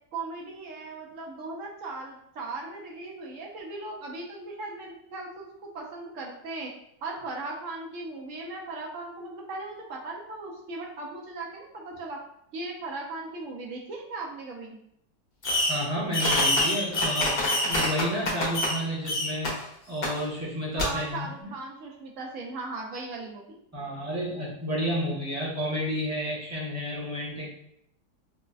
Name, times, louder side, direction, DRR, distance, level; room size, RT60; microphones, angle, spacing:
voice 1, 0.1-6.7 7.0-12.2 12.5-14.8 20.8-23.6, right 3 dB, 65° right, -1 dB, 0.8 m, -38 dB
Fireworks, 15.4-15.9 16.1-18.8 19.0-19.5 20.0-20.1 20.8-20.9, left 1 dB, 55° left, 0.5 m, -25 dB
voice 2, 15.7-19.5 19.9-21.5 23.7-27.5, equal, 15° right, -7 dB, 0.5 m, -31 dB
4.7 x 2.1 x 2.3 m, 0.74 s
omnidirectional pair, 1.9 m